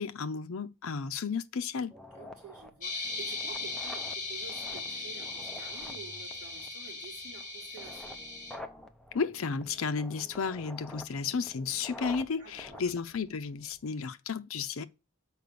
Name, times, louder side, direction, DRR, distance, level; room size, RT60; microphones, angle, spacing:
voice 1, 0.0-1.9 9.1-14.8, left 5 dB, 70° left, 0.6 m, -33 dB
sound 1, 1.9-13.9, left 1 dB, 5° left, 0.6 m, -49 dB
voice 2, 2.1-8.2 12.4-12.9, right 6 dB, 35° right, 3.3 m, -50 dB
sound 2, 2.8-8.6, left 3 dB, 35° left, 2.0 m, -38 dB
6.6 x 4.7 x 6.7 m
head